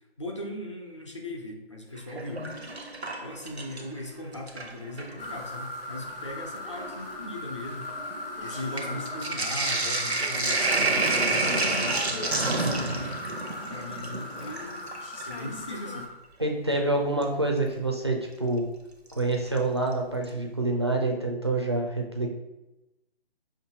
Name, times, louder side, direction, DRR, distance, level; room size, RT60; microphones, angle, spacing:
voice 1, 0.2-2.5 3.2-7.9 8.4-13.2 13.7-14.9 15.3-16.1, left 1 dB, 30° left, 1 dB, 0.5 m, -39 dB
Sink (filling or washing), 2.0-4.0 4.3-5.2 6.0-6.1 6.3-15.4 17.2-17.3 19.1-19.6 19.9-20.0 20.2-20.3, right 2 dB, 90° right, 0.8 m, -29 dB
sound 1, 5.2-16.1, left 2 dB, 60° left, 0.9 m, -38 dB
voice 2, 16.4-18.6 19.2-22.3, right 2 dB, 25° right, 1 dB, 0.4 m, -27 dB
5.8 x 2.6 x 2.8 m, 0.95 s
figure-of-eight pair, 145°, 31 cm